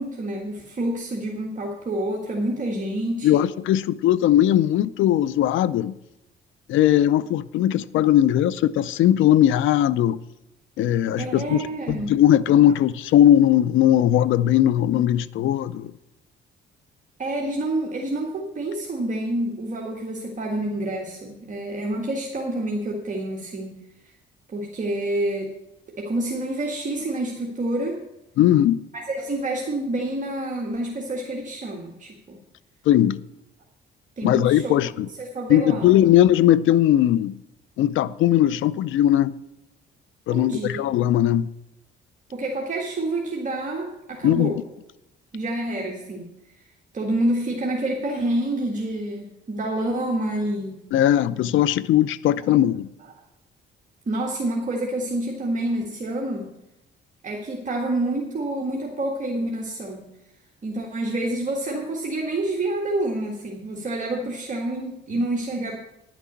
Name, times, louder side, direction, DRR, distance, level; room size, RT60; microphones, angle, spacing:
voice 1, 0.0-3.5 11.2-12.1 17.2-23.8 24.5-25.5 26.0-28.0 28.9-32.4 34.2-34.7 35.2-36.0 40.3-40.8 42.3-44.6 45.3-46.3 46.9-50.8 52.4-52.5 54.1-56.5 57.2-60.1 60.6-65.8, right 1 dB, 40° right, 1.7 m, -28 dB
voice 2, 3.2-5.9 6.7-10.2 10.8-11.6 11.9-15.9 28.4-28.8 32.9-33.2 34.2-35.1 35.5-37.4 37.8-39.3 40.3-41.5 44.2-44.5 50.9-52.9, left 12 dB, 80° left, 0.5 m, -19 dB
11.0 x 6.0 x 8.4 m
cardioid pair, 90°, 20 cm